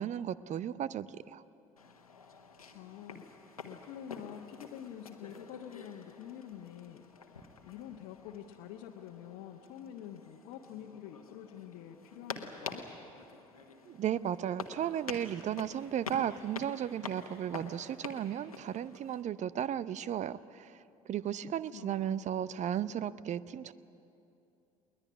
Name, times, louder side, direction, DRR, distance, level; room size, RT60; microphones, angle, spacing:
voice 1, 0.0-1.4 13.9-23.7, right 10 dB, 40° right, 18 dB, 0.7 m, -35 dB
sound 1, 1.8-19.2, left 4 dB, 85° left, 1.3 m, -48 dB
voice 2, 2.7-12.8 21.4-22.3, left 10 dB, 60° left, 0 dB, 1.3 m, -47 dB
21.5 x 19.5 x 9.8 m, 2.7 s
figure-of-eight pair, 60°, 18 cm